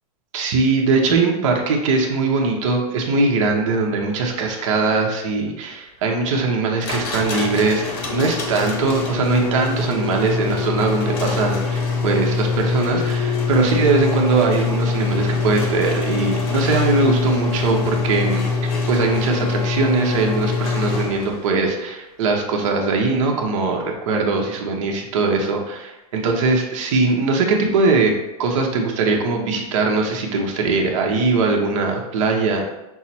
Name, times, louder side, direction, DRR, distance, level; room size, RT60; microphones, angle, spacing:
voice 1, 0.3-7.8 8.1-18.4 18.9-28.1 28.4-32.6, right 3 dB, 50° right, 1 dB, 0.9 m, -20 dB
sound 1, 6.8-21.5, left 4 dB, 40° left, 0.9 m, -23 dB
5.8 x 2.0 x 4.2 m, 0.96 s
supercardioid pair, 160°, 20 cm